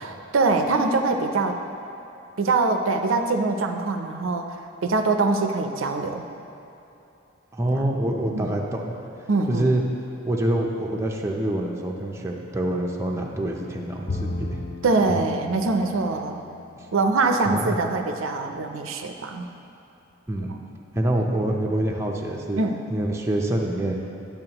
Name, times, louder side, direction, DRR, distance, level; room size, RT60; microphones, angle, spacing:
voice 1, 0.0-1.6 2.4-6.3 7.7-7.8 8.3-8.5 9.3-9.7 14.8-16.4 16.9-19.5 20.5-20.6 22.6-22.8, right 3 dB, 75° right, 5 dB, 0.5 m, -23 dB
voice 2, 7.5-8.9 9.5-9.8 10.3-14.6 15.1-15.2 16.8-16.9 17.5-17.8 20.3-20.5 20.9-22.6 22.9-23.9, right 1 dB, 15° right, -1 dB, 0.5 m, -26 dB
Bowed string instrument, 14.1-17.5, left 2 dB, 35° left, 0.4 m, -35 dB
10.5 x 7.0 x 2.9 m, 2.8 s
head